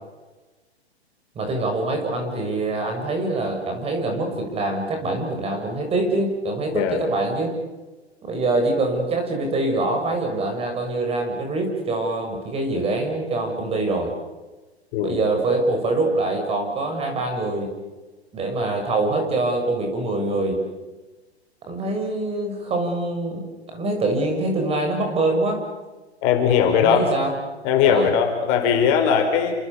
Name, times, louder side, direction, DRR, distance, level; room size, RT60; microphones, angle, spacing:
voice 1, 1.4-7.5 8.2-14.1 15.0-17.7 18.3-20.6 21.7-23.4 23.7-25.6 26.7-27.3 27.9-28.1, right 2 dB, 15° right, 3 dB, 7.0 m, -24 dB
voice 2, 6.7-7.0 14.9-15.2 26.2-27.1 27.6-29.5, left 7 dB, 35° left, 5 dB, 4.9 m, -19 dB
30.0 x 26.5 x 7.1 m, 1.2 s
figure-of-eight pair, 120°, 33 cm